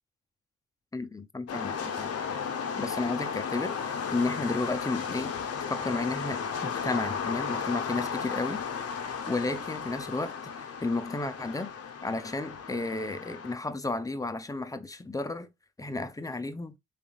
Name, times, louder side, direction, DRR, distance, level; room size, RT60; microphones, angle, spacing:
voice 1, 0.9-2.1 2.8-3.7 4.1-5.3 5.7-8.6 9.3-11.7 12.0-15.5 15.8-16.7, left 2 dB, 10° left, 0.5 m, -32 dB
sound 1, 1.5-13.5, left 6 dB, 55° left, 0.7 m, -34 dB
3.6 x 3.3 x 2.4 m
cardioid pair, 90°, 30 cm